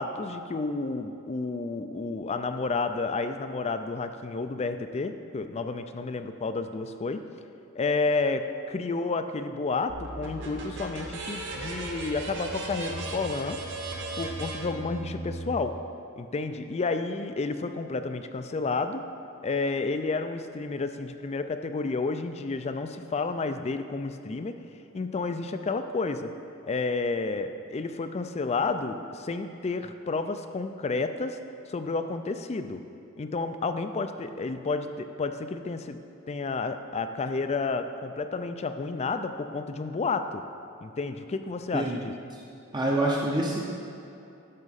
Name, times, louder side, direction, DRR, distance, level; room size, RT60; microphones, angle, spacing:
voice 1, 0.0-7.2 7.8-13.6 14.2-15.7 16.2-19.0 19.4-24.5 24.9-26.3 26.6-31.4 31.7-32.8 33.2-36.0 36.3-40.4 40.8-42.1, left 3 dB, 30° left, 9 dB, 0.4 m, -31 dB
sound 1, 9.9-15.5, right 2 dB, 55° right, 1.1 m, -36 dB
voice 2, 41.7-42.0 42.3-42.4 42.7-43.6, right 1 dB, 20° right, -3 dB, 0.7 m, -26 dB
10.5 x 6.5 x 4.1 m, 2.8 s
head